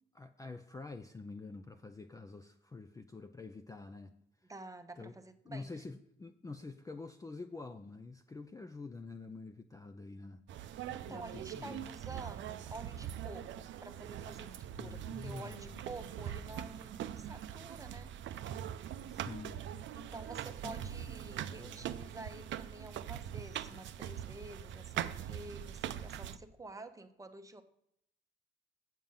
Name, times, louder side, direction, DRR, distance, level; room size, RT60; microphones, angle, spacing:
voice 1, 0.2-4.1 4.4-4.5 5.0-5.1 5.4-10.4 11.1-11.9 14.8-15.8 19.1-19.6 19.9-20.0 20.6-20.9 21.2-21.9, left 3 dB, 15° left, 0.4 m, -47 dB
voice 2, 4.5-5.7 10.9-18.1 19.9-27.6, right 2 dB, 15° right, 0.8 m, -49 dB
sound 1, 10.5-26.4, right 10 dB, 70° right, 0.5 m, -42 dB
7.5 x 7.4 x 5.5 m
cardioid pair, 90°, 20 cm